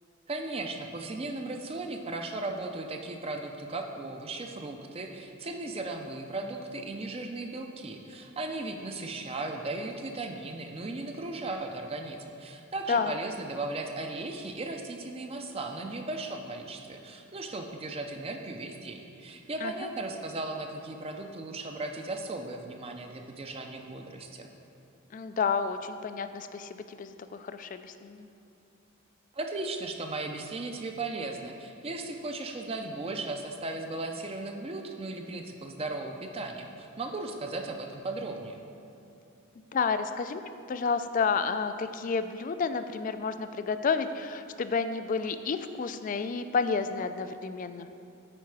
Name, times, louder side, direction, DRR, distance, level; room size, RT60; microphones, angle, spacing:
voice 1, 0.3-24.5 29.3-38.6, right 2 dB, 25° right, 4 dB, 0.5 m, -36 dB
voice 2, 25.1-28.3 39.7-40.4 40.7-47.9, left 5 dB, 40° left, 10 dB, 0.3 m, -30 dB
8.8 x 4.7 x 4.7 m, 2.8 s
head